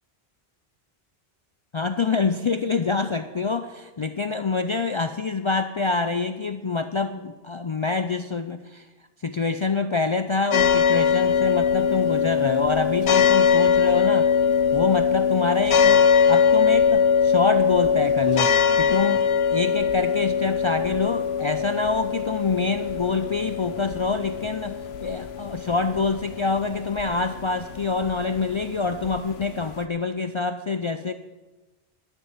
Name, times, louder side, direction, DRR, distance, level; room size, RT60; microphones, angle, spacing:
voice 1, 1.7-8.9 9.2-14.3 14.7-31.1, left 4 dB, 50° left, 9 dB, 0.4 m, -26 dB
sound 1, 10.5-29.8, left 6 dB, 85° left, 1.0 m, -21 dB
12.0 x 6.9 x 7.2 m, 1.2 s
omnidirectional pair, 1.0 m